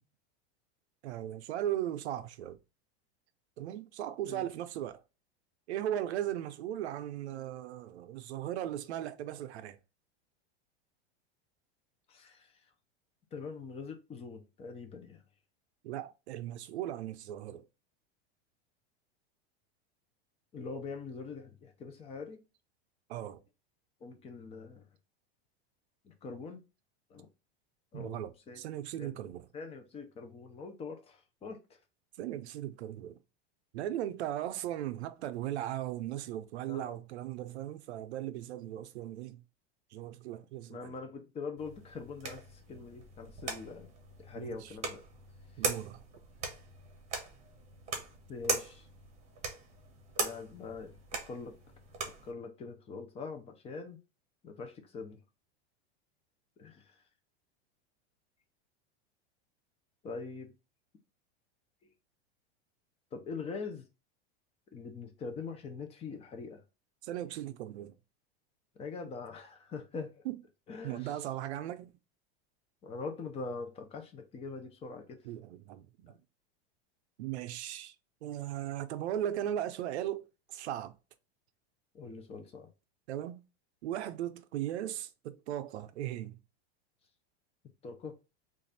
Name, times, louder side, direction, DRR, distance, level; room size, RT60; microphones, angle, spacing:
voice 1, 1.0-2.6 3.6-5.0 5.7-9.8 15.8-17.7 23.1-23.4 27.9-29.5 32.2-33.2 33.7-39.4 39.9-40.9 44.4-44.7 45.6-46.1 67.0-67.9 70.3-70.4 70.8-71.9 75.2-76.2 77.2-77.9 78.2-80.2 80.5-80.9 83.1-83.4 83.8-86.4, right 12 dB, 90° right, 0.6 m, -37 dB
voice 2, 12.1-12.5 13.3-15.2 20.5-22.4 24.0-24.9 26.0-26.6 27.1-27.3 27.9-28.6 29.0-29.2 29.5-31.6 36.7-37.0 40.7-43.9 44.2-45.0 45.6-45.7 48.3-48.9 50.2-51.0 51.2-51.5 52.2-54.0 54.4-55.2 56.6-56.9 60.0-60.5 63.1-63.9 64.7-66.6 68.8-70.1 70.7-71.2 72.8-75.2 81.9-82.7 87.8-88.1, left 4 dB, 20° left, 0.6 m, -43 dB
sound 1, 41.6-52.3, right 4 dB, 20° right, 1.0 m, -40 dB
3.2 x 2.5 x 4.0 m
supercardioid pair, 145°, 32 cm